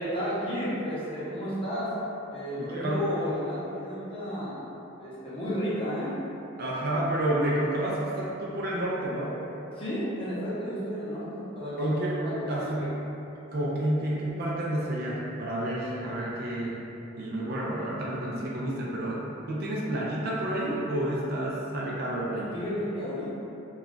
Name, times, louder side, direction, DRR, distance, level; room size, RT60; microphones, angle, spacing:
voice 1, 0.0-2.0 2.3-4.6 5.0-6.2 9.7-12.9 22.5-23.3, equal, 25° left, -10 dB, 0.7 m, -32 dB
voice 2, 2.6-3.1 6.6-9.4 11.8-12.2 12.5-12.9 13.5-16.8 17.2-22.6, right 1 dB, 50° right, -5 dB, 0.4 m, -30 dB
2.4 x 2.2 x 3.6 m, 2.9 s
head